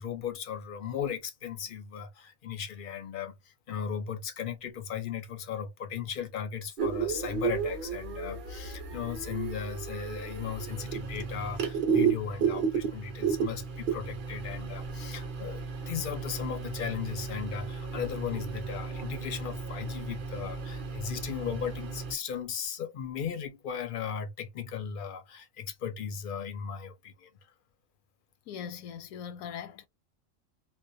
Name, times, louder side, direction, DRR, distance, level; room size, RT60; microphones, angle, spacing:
voice 1, 0.0-27.3, left 8 dB, 60° left, 0.5 m, -37 dB
sound 1, 6.8-22.1, right 6 dB, 50° right, 0.6 m, -33 dB
voice 2, 28.5-29.9, left 8 dB, 90° left, 1.0 m, -40 dB
2.5 x 2.0 x 2.5 m
omnidirectional pair, 1.4 m